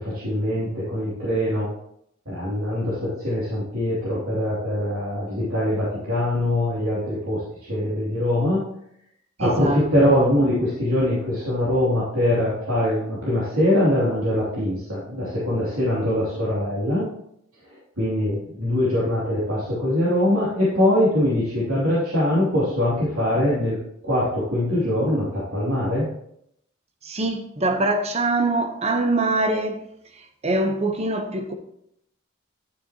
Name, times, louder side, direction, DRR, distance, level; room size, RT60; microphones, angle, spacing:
voice 1, 0.0-1.7 2.3-8.6 9.4-17.1 18.0-23.8 24.0-26.1, left 1 dB, 75° right, 2.8 m, -22 dB
voice 2, 9.4-9.8 27.0-29.8 30.4-31.5, right 2 dB, 30° right, 0.9 m, -23 dB
11.5 x 6.9 x 3.0 m
head